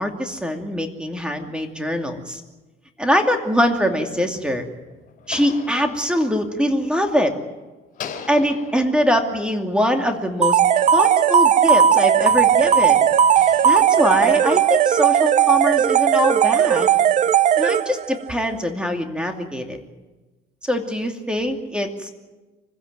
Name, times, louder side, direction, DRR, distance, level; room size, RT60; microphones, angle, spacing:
voice 1, 0.0-2.4 3.0-4.6 5.3-7.3 8.3-10.6 10.9-13.0 13.6-16.9 17.6-19.8 20.6-22.1, equal, 5° right, 5 dB, 2.6 m, -22 dB
sound 1, 4.0-7.5 7.9-11.7 12.3-15.0, left 7 dB, 55° left, 4.7 m, -42 dB
sound 2, 10.4-18.2, right 9 dB, 45° right, 0.6 m, -17 dB
25.0 x 16.0 x 9.2 m, 1.2 s
cardioid pair, 110°, 17 cm